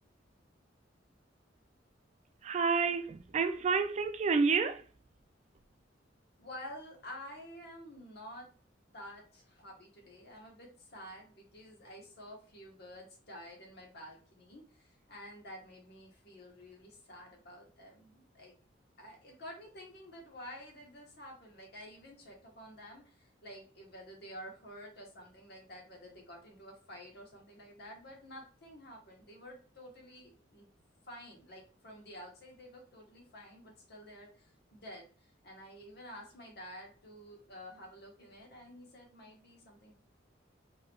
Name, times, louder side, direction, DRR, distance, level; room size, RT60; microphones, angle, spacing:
voice 1, 2.4-4.8, right 5 dB, 35° right, 0.3 m, -29 dB
voice 2, 6.4-8.5 8.9-18.5 19.0-30.7 31.1-39.9, equal, 60° left, 1.3 m, -50 dB
4.6 x 3.2 x 2.4 m
head